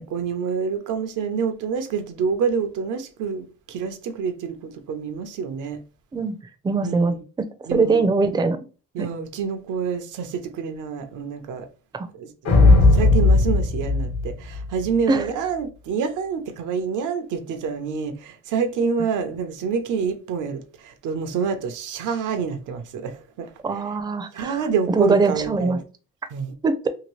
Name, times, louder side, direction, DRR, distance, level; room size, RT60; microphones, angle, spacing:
voice 1, 0.0-5.8 6.8-7.2 7.7-8.1 8.9-11.7 12.1-23.5 24.3-25.8 26.3-26.5, right 6 dB, 85° right, 0.6 m, -27 dB
voice 2, 6.6-8.6 9.0-9.1 11.9-12.1 12.6-12.9 15.1-15.3 23.6-24.6 25.0-25.8 26.6-26.9, right 3 dB, 15° right, 0.4 m, -22 dB
sound 1, 12.5-14.9, left 3 dB, 55° left, 0.7 m, -16 dB
2.8 x 2.6 x 3.0 m
cardioid pair, 90°, 30 cm